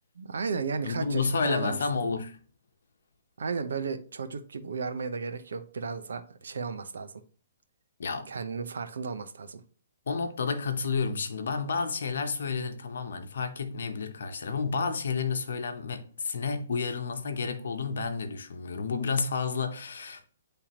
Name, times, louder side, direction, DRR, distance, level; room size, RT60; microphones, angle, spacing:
voice 1, 0.2-1.8 3.4-7.2 8.3-9.6, right 5 dB, 80° right, 0.9 m, -34 dB
voice 2, 0.8-2.4 8.0-8.3 10.1-20.2, left 5 dB, 75° left, 0.9 m, -30 dB
10.0 x 3.5 x 3.0 m
hypercardioid pair, 150°, 0 cm